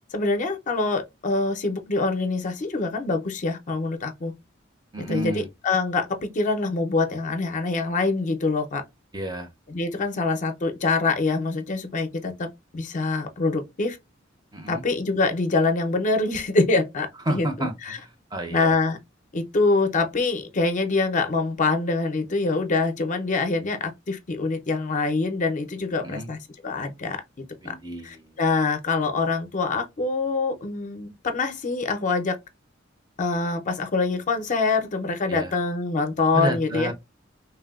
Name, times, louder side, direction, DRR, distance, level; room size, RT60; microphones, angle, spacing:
voice 1, 0.1-4.3 5.0-8.8 9.7-12.5 12.7-14.0 14.7-18.0 18.5-19.0 19.3-27.7 28.0-32.4 33.2-36.9, left 3 dB, 40° left, 0.5 m, -25 dB
voice 2, 4.9-5.5 9.1-9.5 14.5-14.8 17.3-18.8 26.0-26.3 27.6-28.4 35.3-35.5 36.3-36.9, right 1 dB, 20° right, 0.5 m, -31 dB
3.3 x 2.1 x 2.3 m
head